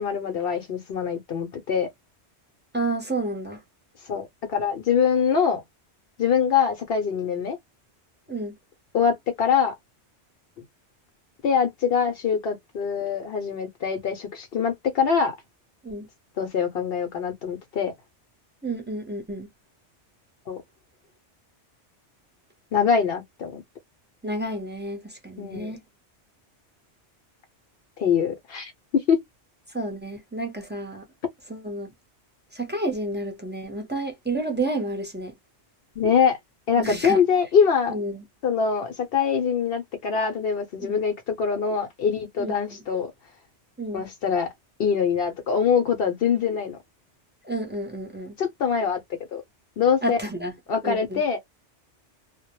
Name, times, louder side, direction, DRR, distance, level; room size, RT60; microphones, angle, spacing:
voice 1, 0.0-1.9 4.1-5.6 6.2-7.6 8.9-9.7 11.4-15.3 16.4-17.9 20.5-20.6 22.7-23.6 25.4-25.7 28.0-29.2 36.0-36.4 36.7-38.0 38.4-43.1 43.9-44.5 44.8-46.8 48.4-49.0 49.3-49.4 49.8-50.2 50.7-51.4, left 6 dB, 65° left, 0.8 m, -24 dB
voice 2, 2.7-3.6 8.3-8.6 15.8-16.1 18.6-19.5 24.2-25.8 29.7-31.0 31.5-31.9 32.5-35.3 36.8-37.2 37.9-38.2 40.8-41.0 42.4-42.6 43.8-44.0 47.4-48.3 50.0-50.6 50.8-51.2, right 2 dB, 10° right, 0.5 m, -30 dB
2.1 x 2.1 x 2.8 m
omnidirectional pair, 1.2 m